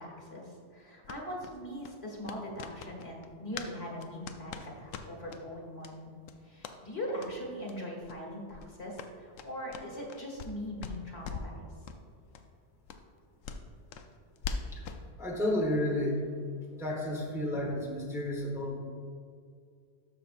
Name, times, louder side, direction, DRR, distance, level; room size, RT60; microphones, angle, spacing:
voice 1, 0.0-6.1 6.4-11.6, equal, 55° left, -1 dB, 1.6 m, -41 dB
sound 1, 1.0-3.7 4.0-5.4 5.8-5.9 6.2-6.8 7.2-7.3 7.6-7.8 8.0-8.2 8.5-10.5 10.8-11.6 11.8-12.0 12.3-12.4 12.9-15.0, left 5 dB, 90° left, 0.9 m, -42 dB
voice 2, 15.2-16.2 16.8-18.8, left 1 dB, 5° right, -2 dB, 0.9 m, -31 dB
12.5 x 5.6 x 2.5 m, 2.2 s
omnidirectional pair, 1.3 m